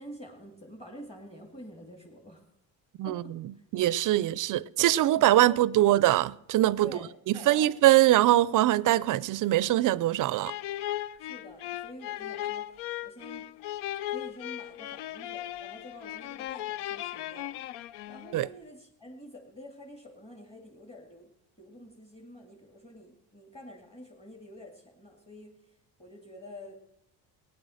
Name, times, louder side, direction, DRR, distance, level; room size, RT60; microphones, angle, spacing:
voice 1, 0.0-2.4 3.1-3.6 4.1-4.6 5.2-5.8 6.8-7.7 11.2-12.7 13.0-13.5 14.1-17.5 18.1-21.3 21.6-25.6 26.0-26.7, equal, 15° left, 2.2 m, -48 dB
voice 2, 3.7-6.9 7.3-10.5 18.3-18.5, right 14 dB, 55° right, 0.4 m, -23 dB
sound 1, 10.4-18.5, left 13 dB, 80° left, 0.6 m, -37 dB
17.5 x 9.4 x 6.4 m
cardioid pair, 130°, 39 cm